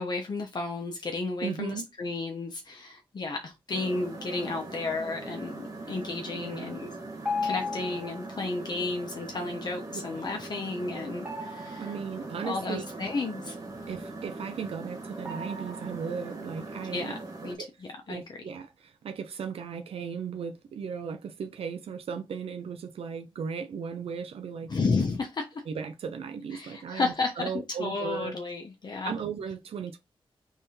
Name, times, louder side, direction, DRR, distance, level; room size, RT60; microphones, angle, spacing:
voice 1, 0.0-6.9 7.4-11.9 12.4-13.5 16.9-17.6 18.1-18.2 24.7-25.5 26.5-27.5 27.8-29.2, left 3 dB, 45° left, 0.9 m, -32 dB
voice 2, 1.4-1.9 6.3-6.8 9.9-10.0 11.7-12.9 13.9-17.1 17.4-17.7 18.1-24.8 25.7-28.3 29.0-30.0, right 6 dB, 85° right, 0.6 m, -36 dB
sound 1, 3.7-17.6, right 2 dB, 35° right, 1.4 m, -41 dB
sound 2, 4.2-4.6 7.2-8.4 11.2-12.3 15.2-16.4, left 4 dB, 15° right, 1.7 m, -36 dB
3.6 x 3.4 x 4.3 m
wide cardioid pair, 125°, 10 cm